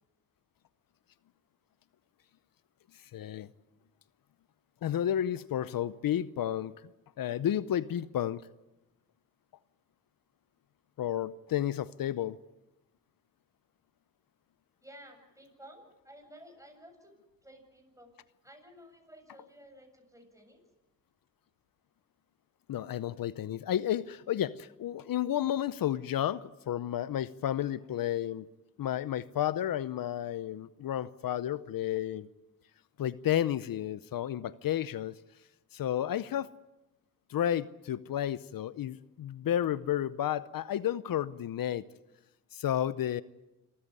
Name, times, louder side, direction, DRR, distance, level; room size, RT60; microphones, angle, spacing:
voice 1, 2.9-3.5 4.8-6.8 7.2-8.4 11.0-12.4 22.7-28.5 28.8-32.3 33.0-35.2 35.7-36.5 37.3-41.8 42.5-43.2, left 11 dB, 75° left, 0.7 m, -32 dB
voice 2, 14.8-17.1 17.4-18.1 18.4-20.6, equal, 10° right, 7.4 m, -54 dB
26.5 x 14.5 x 9.7 m
cardioid pair, 55°, 35 cm